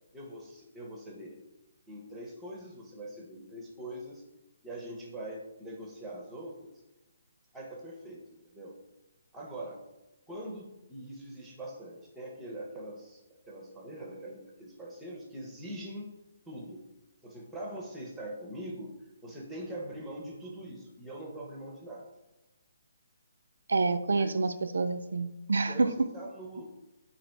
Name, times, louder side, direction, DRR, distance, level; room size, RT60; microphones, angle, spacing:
voice 1, 0.1-1.4 1.9-4.2 4.6-6.7 7.5-8.2 8.5-8.8 9.3-9.8 10.3-13.2 13.5-16.1 16.5-16.8 17.2-18.9 19.2-22.1 24.1-24.5 25.6-26.6, right 1 dB, 5° right, -2 dB, 0.5 m, -43 dB
voice 2, 23.7-25.9, right 3 dB, 75° right, 10 dB, 0.3 m, -28 dB
4.0 x 2.7 x 4.4 m, 1.0 s
hypercardioid pair, 180°, 0 cm